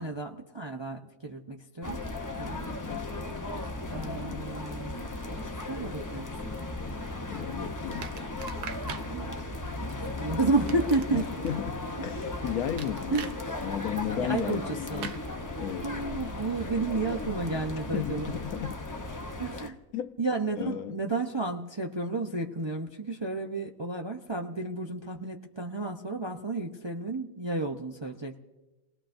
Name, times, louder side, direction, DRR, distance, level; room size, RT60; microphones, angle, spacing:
voice 1, 0.0-2.0 2.4-2.7 3.9-5.0 5.3-6.5 9.1-9.3 9.8-11.4 13.1-13.3 14.2-15.1 15.8-18.4 19.4-19.8 20.2-28.4, right 3 dB, 30° right, 0.5 m, -32 dB
sound 1, 1.8-19.7, left 2 dB, 25° left, 0.4 m, -36 dB
voice 2, 2.6-3.1 7.3-8.2 11.1-13.3 13.6-15.2 15.6-15.9 17.9-18.8 19.9-20.2 20.6-20.9, left 9 dB, 70° left, 1.1 m, -34 dB
sound 2, 8.0-9.1 10.5-11.5 12.8-13.4 15.0-15.2, right 8 dB, 85° right, 1.4 m, -40 dB
29.5 x 19.0 x 2.6 m
omnidirectional pair, 1.6 m